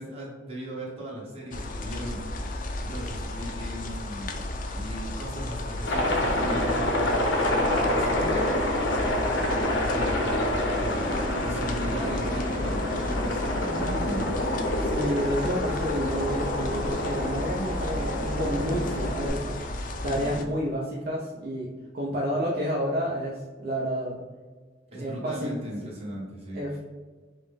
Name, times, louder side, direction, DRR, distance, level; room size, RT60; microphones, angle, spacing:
voice 1, 0.0-2.2 2.8-8.5 9.8-14.3 20.1-20.4 24.9-26.6, equal, 35° right, -4 dB, 1.2 m, -37 dB
sound 1, 1.5-20.4, left 1 dB, 45° left, 0.4 m, -33 dB
Aircraft, 5.9-19.3, left 1 dB, 85° left, 0.7 m, -27 dB
voice 2, 14.8-19.6 20.0-21.7 21.9-24.2 24.9-25.5 26.5-26.8, equal, 55° right, -3 dB, 0.5 m, -30 dB
5.3 x 2.0 x 3.4 m, 1.4 s
head